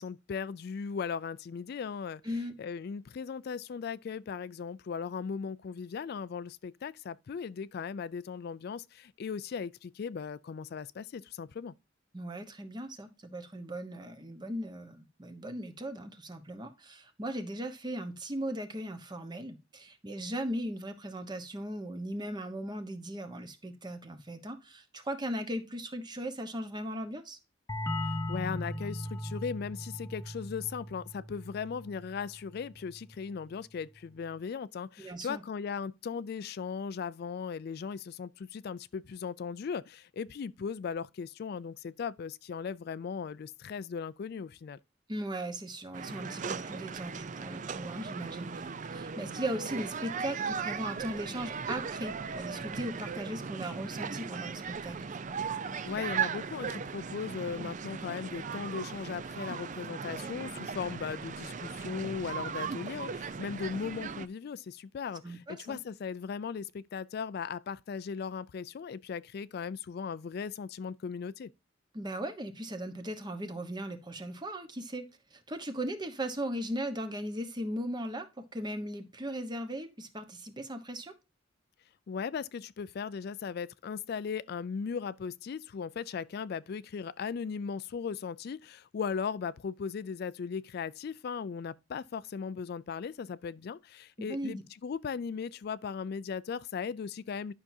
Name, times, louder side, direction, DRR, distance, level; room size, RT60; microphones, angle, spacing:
voice 1, 0.0-2.2 2.6-11.7 28.0-44.8 55.7-71.5 82.1-97.5, left 6 dB, 55° left, 0.3 m, -38 dB
voice 2, 2.2-2.6 12.1-27.4 35.0-35.4 45.1-55.0 65.2-65.8 71.9-81.1 94.2-94.6, right 1 dB, 25° right, 1.1 m, -38 dB
sound 1, 27.7-33.1, left 1 dB, 15° left, 1.0 m, -38 dB
sound 2, 45.9-64.3, right 6 dB, 40° right, 0.5 m, -38 dB
11.0 x 5.9 x 2.7 m
head